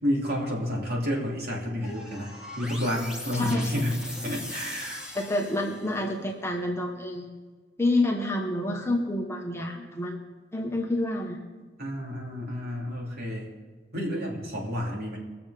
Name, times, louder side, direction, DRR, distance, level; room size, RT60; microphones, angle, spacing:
voice 1, 0.0-5.1 11.8-13.5 13.9-15.2, equal, 60° right, -2 dB, 3.1 m, -30 dB
sound 1, 1.8-6.1, left 1 dB, 5° right, 1.5 m, -40 dB
voice 2, 3.4-3.7 5.1-7.4 7.8-10.2 10.5-11.4, left 1 dB, 15° left, 1 dB, 1.3 m, -28 dB
21.0 x 7.2 x 5.1 m, 1.3 s
head